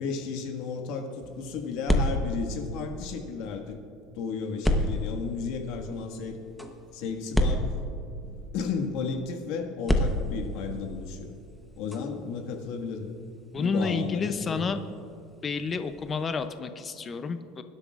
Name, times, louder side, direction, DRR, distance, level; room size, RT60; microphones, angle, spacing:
voice 1, 0.0-3.8 4.1-6.4 6.9-7.7 8.2-11.3 11.8-13.1 13.6-14.8, left 5 dB, 60° left, 3 dB, 1.6 m, -33 dB
sound 1, 1.2-3.5 4.6-8.6 9.8-16.5, left 1 dB, 5° left, 0.9 m, -32 dB
voice 2, 13.5-14.8 15.4-17.6, left 4 dB, 20° left, 9 dB, 0.5 m, -30 dB
23.0 x 12.0 x 2.4 m, 2.6 s
cardioid pair, 160°, 0 cm